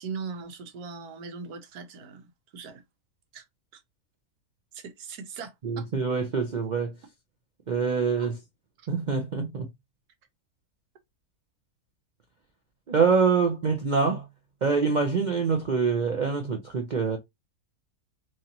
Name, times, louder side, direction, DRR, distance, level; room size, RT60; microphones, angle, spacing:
voice 1, 0.0-2.8 3.3-3.4 3.7-3.8 4.7-5.9 8.2-8.3 8.8-8.9, right 5 dB, 90° right, 1.4 m, -40 dB
voice 2, 5.6-6.9 7.7-8.4 8.9-9.7 12.9-14.3 14.6-17.2, right 5 dB, 65° right, 0.4 m, -25 dB
3.2 x 2.8 x 3.8 m
omnidirectional pair, 1.6 m